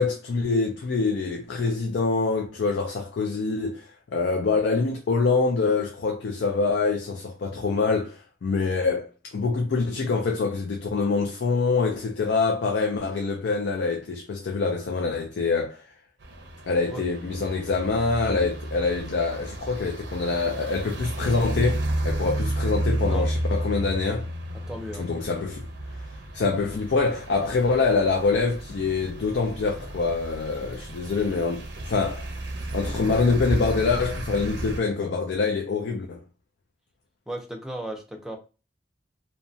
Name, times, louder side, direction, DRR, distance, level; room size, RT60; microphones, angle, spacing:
voice 1, 0.0-15.8 16.7-24.3 25.0-25.7 26.3-32.3 32.7-36.2, left 4 dB, 70° left, 0.4 m, -25 dB
sound 1, 16.2-34.8, right 1 dB, 80° right, 0.7 m, -32 dB
voice 2, 24.7-25.1 37.3-38.4, right 1 dB, 5° right, 0.5 m, -35 dB
2.8 x 2.2 x 2.6 m
head